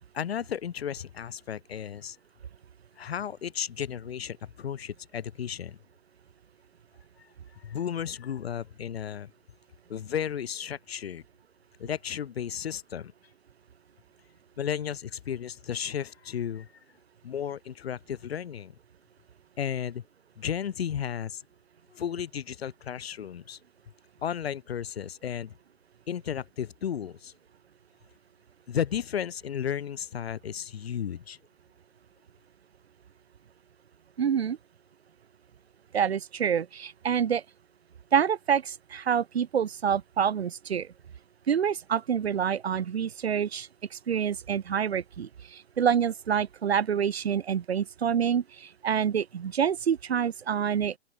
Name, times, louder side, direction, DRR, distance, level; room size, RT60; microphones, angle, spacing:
voice 1, 0.1-2.2 3.0-5.8 7.2-7.3 7.5-9.3 9.9-11.2 11.8-13.1 14.6-16.7 17.2-18.7 19.6-20.0 20.4-21.4 21.9-23.6 24.2-25.5 26.1-27.3 28.7-31.4, left 9 dB, 65° left, 1.0 m, -34 dB
voice 2, 34.2-34.6 35.9-37.4 38.1-40.9 41.5-43.7 44.1-50.9, right 8 dB, 65° right, 1.8 m, -27 dB
open air
figure-of-eight pair, 125°, 34 cm